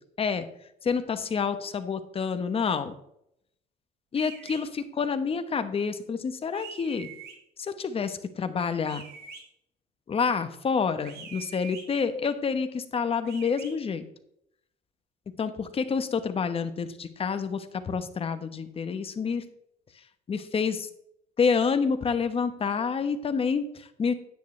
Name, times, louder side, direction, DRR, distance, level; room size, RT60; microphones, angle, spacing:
voice 1, 0.8-2.9 4.1-7.1 7.6-9.0 10.1-14.0 15.4-19.4 20.3-20.9 21.4-24.1, left 5 dB, 35° left, 10 dB, 1.0 m, -28 dB
sound 1, 4.2-4.6 6.5-7.4 8.8-9.4 11.0-11.8 13.2-13.7, right 6 dB, 70° right, 1.9 m, -44 dB
10.0 x 9.3 x 3.2 m, 0.75 s
cardioid pair, 110°, 17 cm